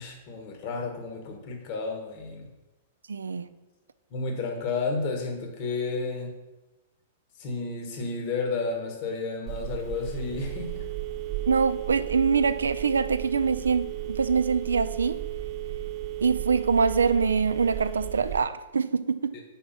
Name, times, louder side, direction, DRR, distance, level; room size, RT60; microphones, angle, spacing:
voice 1, 0.0-2.5 4.1-6.3 7.4-10.9 19.3-19.4, left 4 dB, 50° left, 3 dB, 1.2 m, -32 dB
voice 2, 3.1-3.5 11.5-15.2 16.2-19.4, right 5 dB, 90° right, 13 dB, 0.3 m, -24 dB
Telephone, 9.5-18.4, right 13 dB, 35° right, 0.8 m, -34 dB
4.7 x 4.3 x 5.5 m, 1.1 s
hypercardioid pair, 115°, 0 cm